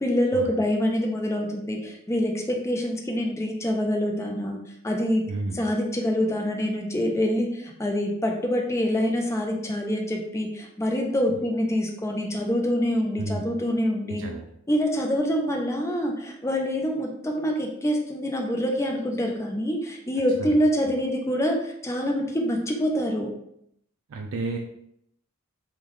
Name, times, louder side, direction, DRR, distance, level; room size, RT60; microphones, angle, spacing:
voice 1, 0.0-5.3 5.5-14.2 14.7-23.3, equal, 15° left, 1 dB, 0.5 m, -26 dB
voice 2, 5.3-5.6 11.3-11.4 13.2-13.5 14.1-14.4 20.4-20.6 24.1-24.6, right 3 dB, 70° right, 1 dB, 0.4 m, -32 dB
3.6 x 2.3 x 3.1 m, 0.74 s
head